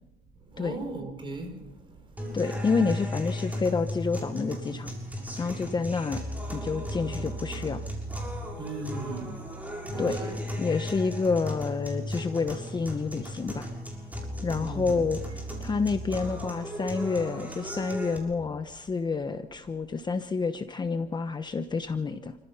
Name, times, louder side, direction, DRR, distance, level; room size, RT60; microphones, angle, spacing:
voice 1, 0.5-1.6 8.6-9.4 9.9-10.4 14.6-15.0, right 2 dB, 30° right, 6.0 m, -37 dB
sound 1, 2.2-18.2, equal, 10° right, 6.6 m, -35 dB
voice 2, 2.3-4.9 5.4-6.2 6.5-7.8 10.0-10.2 10.6-13.7 14.4-15.2 15.6-22.4, left 4 dB, 25° left, 1.1 m, -29 dB
29.5 x 15.5 x 5.7 m
cardioid pair, 110°, 17 cm